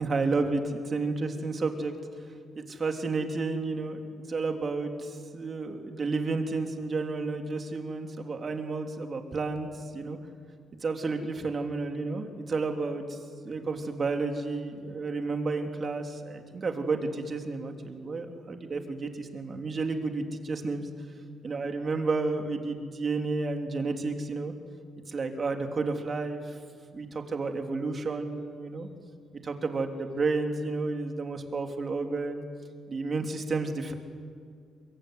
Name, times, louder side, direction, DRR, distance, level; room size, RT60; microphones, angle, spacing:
voice 1, 0.0-1.9 2.7-10.2 10.8-13.2 13.4-20.9 21.4-24.5 25.1-26.4 26.9-28.9 29.4-32.4 32.9-33.9, right 3 dB, 40° right, 4 dB, 3.2 m, -31 dB
24.0 x 22.5 x 9.8 m, 2.1 s
cardioid pair, 90°, 0 cm